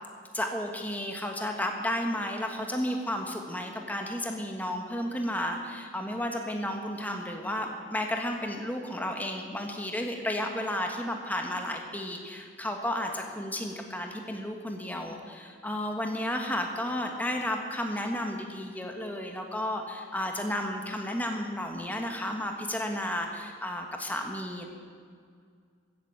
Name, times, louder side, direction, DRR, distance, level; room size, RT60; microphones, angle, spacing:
voice 1, 0.3-24.7, left 1 dB, 10° left, 3 dB, 1.4 m, -32 dB
15.5 x 8.2 x 7.7 m, 2.1 s
head